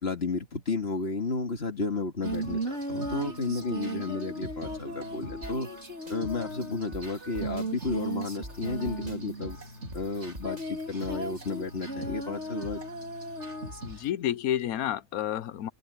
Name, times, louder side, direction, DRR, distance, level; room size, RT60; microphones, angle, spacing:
voice 1, 0.0-5.7 6.1-9.6 9.9-12.8, left 3 dB, 45° left, 2.8 m, -32 dB
Female singing, 2.2-14.1, right 2 dB, 50° right, 4.3 m, -36 dB
sound 1, 5.4-11.8, right 1 dB, 25° right, 3.3 m, -48 dB
voice 2, 13.8-15.7, left 11 dB, 90° left, 1.2 m, -30 dB
omnidirectional pair, 1.5 m